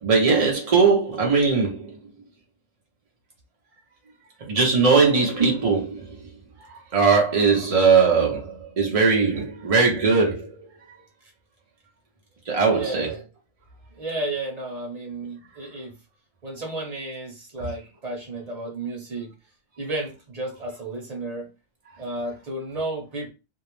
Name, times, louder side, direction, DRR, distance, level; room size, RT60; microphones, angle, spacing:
voice 1, 0.0-1.9 4.5-6.1 6.9-10.6 12.5-13.2 17.6-17.7, right 4 dB, 60° right, 0.3 m, -20 dB
voice 2, 12.7-13.2 13.9-15.9 16.4-19.3 19.8-21.5 22.0-23.3, right 2 dB, 30° right, 0.9 m, -32 dB
2.6 x 2.0 x 3.0 m
omnidirectional pair, 1.5 m